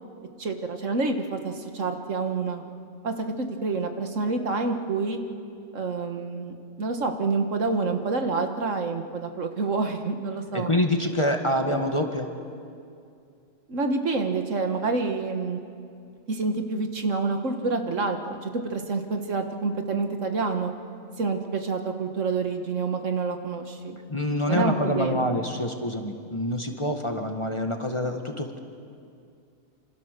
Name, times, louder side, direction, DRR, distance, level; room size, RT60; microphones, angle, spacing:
voice 1, 0.4-2.6 3.0-5.2 5.7-10.7 13.7-15.6 16.3-20.7 21.2-24.0 24.5-25.4, right 4 dB, 65° right, 5 dB, 1.8 m, -28 dB
voice 2, 10.5-12.3 24.1-28.6, left 1 dB, 20° left, 4 dB, 1.5 m, -26 dB
26.5 x 26.5 x 6.7 m, 2.4 s
omnidirectional pair, 1.4 m